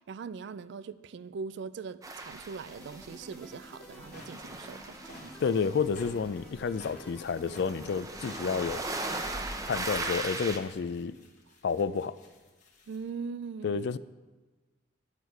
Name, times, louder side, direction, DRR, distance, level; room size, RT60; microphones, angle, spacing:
voice 1, 0.1-5.3 12.9-13.9, right 5 dB, 60° right, 16 dB, 0.3 m, -41 dB
sound 1, 2.0-3.6 3.9-10.6, right 2 dB, 15° right, 0.6 m, -38 dB
sound 2, 2.7-11.0, equal, 5° left, 1.4 m, -50 dB
sound 3, 4.1-13.1, left 1 dB, 40° left, 1.3 m, -54 dB
voice 2, 5.4-8.8 9.7-11.2 11.6-12.1 13.6-14.0, left 5 dB, 55° left, 15 dB, 0.3 m, -30 dB
11.0 x 8.3 x 4.6 m, 1.3 s
head